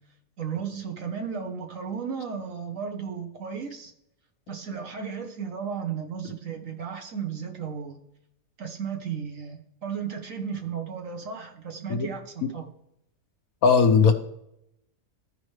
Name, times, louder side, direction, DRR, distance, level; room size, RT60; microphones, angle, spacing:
voice 1, 0.4-3.9 4.5-8.0 8.6-12.7, right 7 dB, 55° right, 3 dB, 1.4 m, -34 dB
voice 2, 13.6-14.1, left 5 dB, 65° left, 6 dB, 1.2 m, -18 dB
14.5 x 5.0 x 3.2 m, 0.80 s
omnidirectional pair, 1.7 m